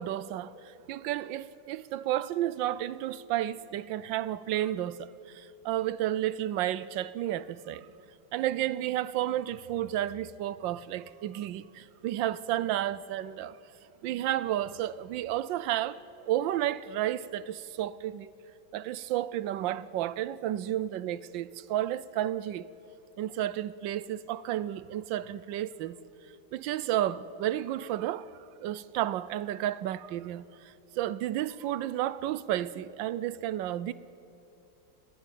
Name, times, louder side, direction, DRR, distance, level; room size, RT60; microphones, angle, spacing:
voice 1, 0.0-7.9 8.3-13.6 14.0-16.0 16.2-18.3 18.7-22.7 23.2-26.0 26.5-28.3 28.6-30.5 31.0-33.9, right 12 dB, 80° right, 1.3 m, -32 dB
30.0 x 12.0 x 9.1 m
omnidirectional pair, 2.1 m